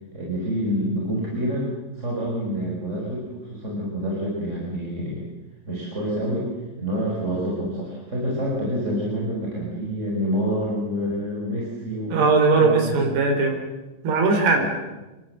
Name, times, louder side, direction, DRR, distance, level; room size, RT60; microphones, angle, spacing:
voice 1, 0.1-5.3 5.7-6.5 6.8-12.9 14.6-14.7, equal, 15° right, -4 dB, 5.0 m, -27 dB
voice 2, 12.1-13.6 14.0-14.7, right 3 dB, 70° right, 2 dB, 5.9 m, -19 dB
27.5 x 22.5 x 7.9 m, 1.1 s
omnidirectional pair, 4.9 m